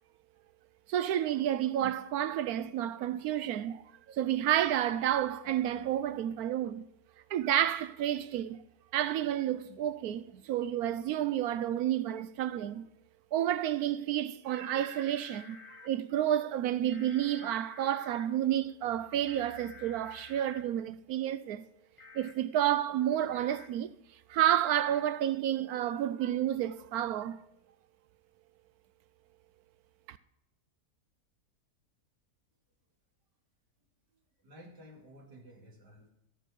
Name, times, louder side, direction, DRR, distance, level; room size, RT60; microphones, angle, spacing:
voice 1, 0.9-3.8 4.1-6.8 7.3-8.6 8.9-12.8 13.3-15.6 15.8-21.7 22.1-23.9 24.3-27.4 30.1-30.2, right 11 dB, 70° right, 1.0 m, -30 dB
sound 1, 14.5-15.9 16.9-18.3 19.3-20.6 22.0-22.3 23.3-23.7 24.7-25.0, left 4 dB, 25° left, 1.0 m, -51 dB
voice 2, 34.1-36.1, equal, 90° right, 2.9 m, -54 dB
17.0 x 6.9 x 4.9 m
omnidirectional pair, 1.8 m